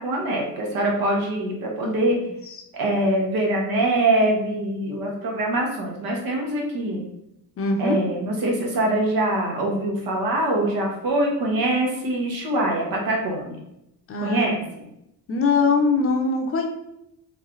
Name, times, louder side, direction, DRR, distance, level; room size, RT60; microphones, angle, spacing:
voice 1, 0.0-2.2 2.7-7.0 7.8-13.6 14.2-14.6, right 1 dB, 70° right, 0 dB, 1.3 m, -23 dB
voice 2, 7.6-8.0 14.1-14.5 15.3-16.7, left 4 dB, 40° left, 3 dB, 0.6 m, -22 dB
3.4 x 3.1 x 3.8 m, 0.82 s
cardioid pair, 145°, 36 cm